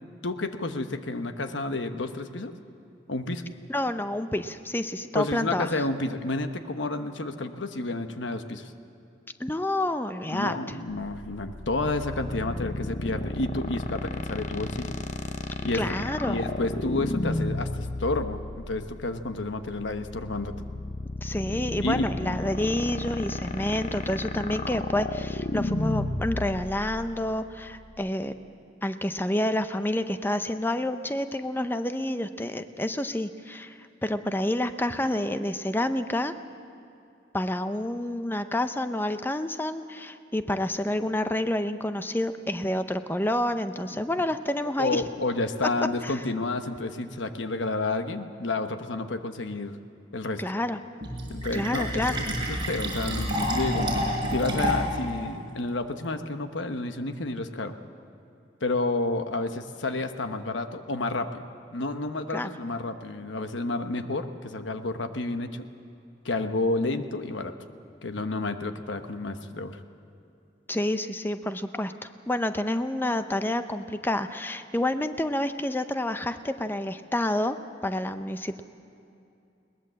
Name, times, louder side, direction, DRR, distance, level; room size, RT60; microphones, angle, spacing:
voice 1, 0.2-2.5 3.1-3.4 5.1-8.7 10.3-15.0 15.6-20.7 21.8-22.1 44.6-49.8 50.1-50.4 51.3-53.9 54.3-57.7 58.6-61.4 61.7-65.7 66.2-67.5 68.0-69.8, left 2 dB, 70° left, 8 dB, 1.1 m, -30 dB
voice 2, 3.7-5.8 9.4-10.6 15.7-16.4 21.2-28.3 28.8-36.3 37.3-45.0 46.0-46.2 50.4-50.8 51.5-52.2 62.3-62.5 70.7-77.6 77.8-78.6, left 1 dB, 10° left, 10 dB, 0.7 m, -29 dB
sound 1, 10.9-28.1, left 2 dB, 40° left, 0.8 m, -33 dB
Fill (with liquid), 51.0-55.0, equal, 25° right, 5.2 m, -28 dB
21.5 x 19.0 x 7.6 m, 2.6 s
head